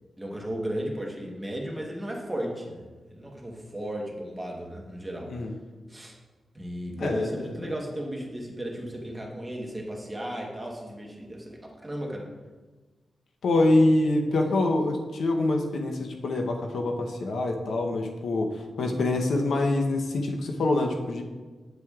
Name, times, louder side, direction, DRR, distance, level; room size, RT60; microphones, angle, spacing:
voice 1, 0.2-5.3 5.9-6.2 6.5-12.3, right 1 dB, 10° right, -1 dB, 1.1 m, -35 dB
voice 2, 7.0-7.3 13.4-18.5 18.8-21.2, left 2 dB, 85° left, 3 dB, 0.8 m, -25 dB
8.6 x 7.6 x 2.4 m, 1.3 s
wide cardioid pair, 145°, 0 cm